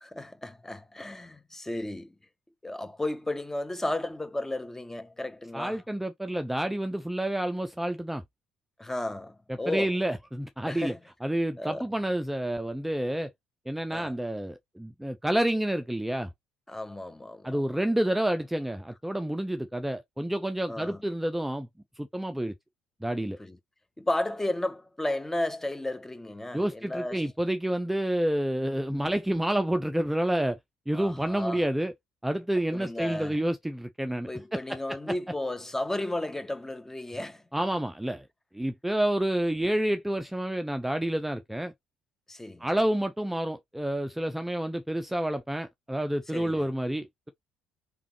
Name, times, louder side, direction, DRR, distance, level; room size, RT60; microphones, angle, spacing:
voice 1, 0.0-2.1 2.6-5.8 8.8-9.9 10.6-11.0 11.6-11.9 13.9-14.2 16.7-17.6 20.7-21.0 23.4-23.6 24.0-27.3 30.9-31.6 32.7-33.4 34.3-37.4 42.3-42.7 46.3-46.7, left 1 dB, 10° left, 1.1 m, -33 dB
voice 2, 5.5-8.2 9.5-10.9 11.2-13.3 13.7-16.3 17.4-21.7 22.0-22.5 23.0-23.4 26.5-30.6 30.9-31.9 32.2-35.0 37.5-38.2 38.5-41.7 42.6-47.3, right 1 dB, 5° right, 0.6 m, -29 dB
4.6 x 3.5 x 3.1 m
hypercardioid pair, 60°, 3 cm